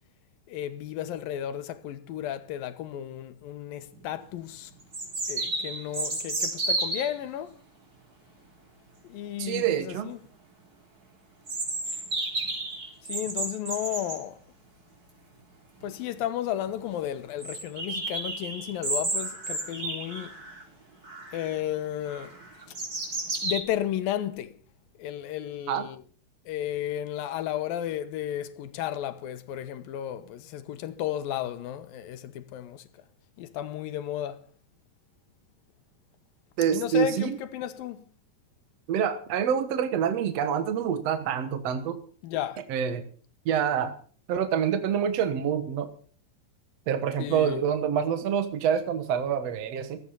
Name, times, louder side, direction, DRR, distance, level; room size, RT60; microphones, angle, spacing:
voice 1, 0.5-4.7 5.3-7.5 9.0-10.2 13.0-14.4 15.8-20.4 21.3-22.4 23.4-24.5 25.0-26.0 26.5-32.9 33.4-34.4 36.7-38.0 42.2-42.6 47.2-47.6, left 11 dB, 70° left, 2.6 m, -33 dB
sound 1, 3.9-4.0 4.9-7.1 11.5-14.2 15.8-15.9 16.2-16.3 16.7-16.8 17.4-20.6 21.0-21.6 22.1-23.6, right 2 dB, 25° right, 3.8 m, -32 dB
voice 2, 9.4-10.1 25.7-25.9 36.6-37.4 38.9-42.0 42.7-43.0 43.4-43.9 44.3-45.9 46.9-50.0, right 8 dB, 65° right, 1.6 m, -26 dB
15.5 x 14.5 x 5.6 m
omnidirectional pair, 4.7 m